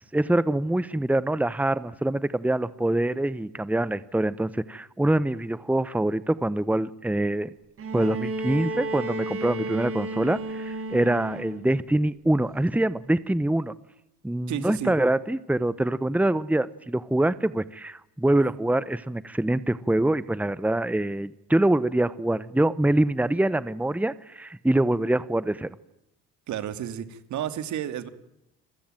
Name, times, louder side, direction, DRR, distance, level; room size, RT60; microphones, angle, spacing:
voice 1, 0.1-7.5 7.9-13.7 14.2-25.7, right 1 dB, 5° right, 17 dB, 1.1 m, -25 dB
Bowed string instrument, 7.8-11.8 13.1-13.2, right 2 dB, 45° right, 3.5 m, -33 dB
voice 2, 14.5-14.9 26.5-28.1, right 10 dB, 65° right, 11 dB, 2.6 m, -32 dB
29.0 x 21.5 x 9.1 m, 0.85 s
supercardioid pair, 70°, 31 cm